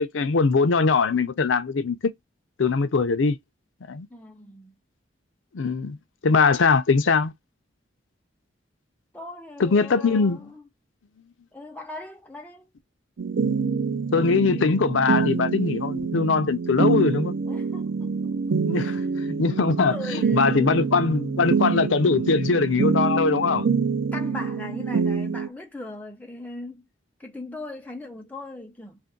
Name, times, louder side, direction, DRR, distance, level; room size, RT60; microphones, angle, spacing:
voice 1, 0.0-2.1 2.6-3.4 3.9-4.1 5.5-6.0 6.2-7.3 9.6-10.5 14.1-17.3 18.6-19.0 19.4-23.7, left 4 dB, 75° left, 0.5 m, -21 dB
voice 2, 4.1-4.7 9.1-10.7 11.5-12.7 17.5-19.1 19.9-20.7 24.1-26.8 27.2-29.0, left 2 dB, 10° left, 0.6 m, -39 dB
sound 1, 13.2-25.5, right 5 dB, 70° right, 0.5 m, -26 dB
2.6 x 2.5 x 3.7 m
head